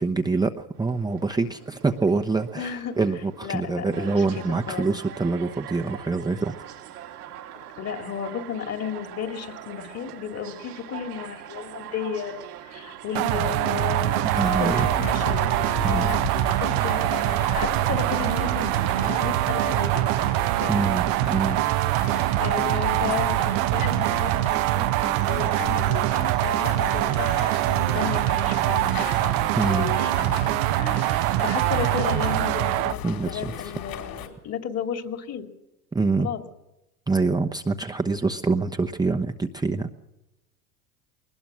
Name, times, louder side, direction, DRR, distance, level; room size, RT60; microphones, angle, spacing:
voice 1, 0.0-6.5 14.2-14.9 15.8-16.2 20.7-21.6 29.6-29.9 33.0-33.5 35.9-36.3 37.1-39.9, right 3 dB, 10° right, 3 dB, 0.9 m, -25 dB
sound 1, 0.7-17.9, right 11 dB, 85° right, 2.1 m, -42 dB
voice 2, 2.5-3.0 3.4-4.9 7.8-15.5 15.8-16.2 16.5-20.0 20.6-20.9 22.4-27.4 27.7-29.3 29.9-35.5 36.2-36.4, left 8 dB, 35° left, 6 dB, 2.5 m, -33 dB
sound 2, 13.1-32.9, right 19 dB, 55° right, 0.8 m, -24 dB
sound 3, 14.4-34.3, left 8 dB, 50° left, 4.4 m, -36 dB
21.0 x 20.0 x 6.3 m, 0.95 s
hypercardioid pair, 95°, 45 cm